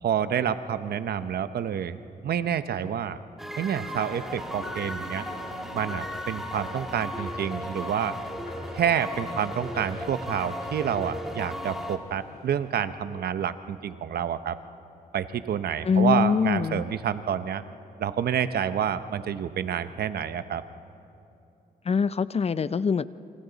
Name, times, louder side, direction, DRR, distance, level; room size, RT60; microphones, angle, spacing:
voice 1, 0.0-3.2 3.6-5.3 5.7-8.2 8.7-14.6 15.1-17.6 18.0-20.6, right 8 dB, 75° right, 12 dB, 0.8 m, -28 dB
sound 1, 3.4-12.0, equal, ahead, 2.2 m, -36 dB
sound 2, 4.0-13.1, left 1 dB, 75° left, 6.9 m, -44 dB
voice 2, 15.8-16.8 21.9-23.1, left 5 dB, 40° left, 16 dB, 0.5 m, -23 dB
28.5 x 25.5 x 4.0 m, 2.7 s
cardioid pair, 70°, 16 cm